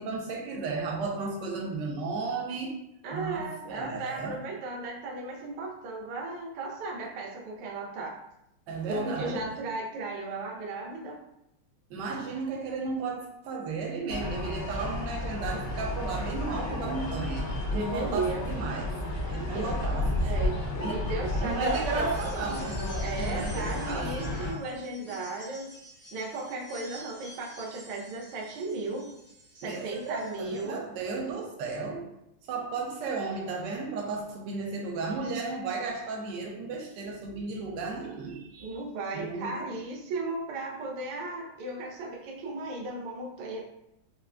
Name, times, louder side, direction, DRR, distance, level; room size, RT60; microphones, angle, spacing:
voice 1, 0.0-2.8 3.1-4.4 8.7-9.5 11.9-19.0 19.3-20.3 20.8-22.8 23.2-24.4 29.6-32.1 32.5-38.8 39.1-39.7, right 4 dB, 70° right, 0 dB, 1.1 m, -34 dB
voice 2, 3.0-8.2 8.8-11.2 17.7-18.5 19.5-19.7 20.2-20.6 20.9-22.0 23.0-25.7 26.1-29.1 29.5-30.8 38.6-43.6, right 2 dB, 90° right, -1 dB, 1.5 m, -35 dB
sound 1, 14.1-24.5, left 1 dB, 65° left, 1.3 m, -32 dB
sound 2, 21.3-30.7, equal, 40° left, 0.8 m, -50 dB
4.5 x 2.1 x 2.4 m, 0.82 s
omnidirectional pair, 2.3 m